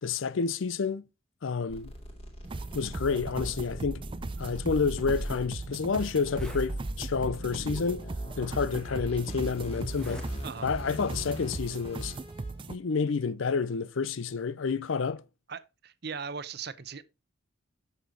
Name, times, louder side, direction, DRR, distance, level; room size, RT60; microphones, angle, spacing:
voice 1, 0.0-1.0 1.4-1.9 2.7-4.0 4.4-8.1 8.4-10.3 10.6-12.1 12.7-15.2, left 5 dB, 75° left, 0.5 m, -29 dB
sound 1, 1.7-12.5, equal, 30° left, 2.4 m, -40 dB
sound 2, 2.4-12.8, right 3 dB, 25° right, 0.4 m, -39 dB
Zipper (clothing), 5.1-5.3 5.8-5.9 6.2-6.7 7.6-7.7 8.6-8.7 9.8-10.3 10.6-11.0, equal, 5° left, 1.5 m, -46 dB
voice 2, 15.5-17.0, right 5 dB, 50° right, 0.7 m, -39 dB
7.8 x 6.7 x 3.9 m
head